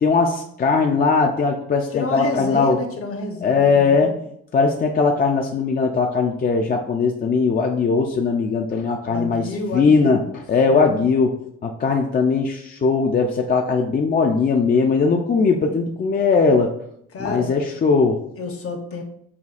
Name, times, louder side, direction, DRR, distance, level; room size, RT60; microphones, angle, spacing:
voice 1, 0.0-2.8 3.4-4.1 4.5-10.2 10.5-11.3 11.6-16.7 17.2-18.2, left 4 dB, 30° left, 2 dB, 0.4 m, -19 dB
voice 2, 1.9-4.1 9.0-10.2 10.7-11.0 17.1-17.5 18.3-19.0, left 3 dB, 50° left, 4 dB, 0.8 m, -29 dB
5.7 x 2.3 x 2.4 m, 0.71 s
cardioid pair, 90°, 30 cm